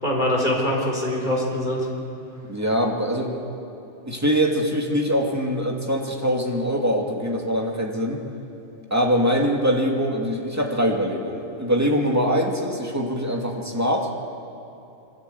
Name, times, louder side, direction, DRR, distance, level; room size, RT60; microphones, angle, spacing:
voice 1, 0.0-1.9, left 1 dB, 40° left, -2 dB, 4.4 m, -23 dB
voice 2, 2.5-3.3 4.0-8.2 8.9-14.1, equal, 15° right, 0 dB, 2.3 m, -23 dB
24.5 x 13.5 x 8.4 m, 2.9 s
omnidirectional pair, 1.2 m